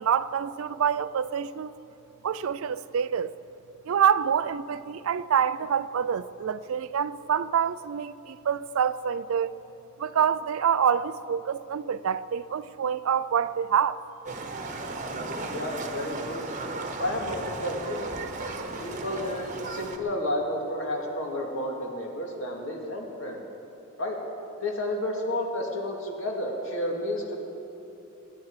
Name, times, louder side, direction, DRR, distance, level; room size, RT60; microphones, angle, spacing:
voice 1, 0.0-1.7 2.2-3.3 3.9-9.6 10.0-14.0, right 8 dB, 75° right, 0.4 m, -26 dB
Livestock farm animals working animals, 14.3-20.0, right 3 dB, 35° right, 1.1 m, -35 dB
voice 2, 15.1-16.4 17.0-18.0 18.8-23.4 24.0-24.2 24.6-27.4, left 1 dB, 60° left, 2.4 m, -31 dB
24.5 x 10.5 x 4.9 m
head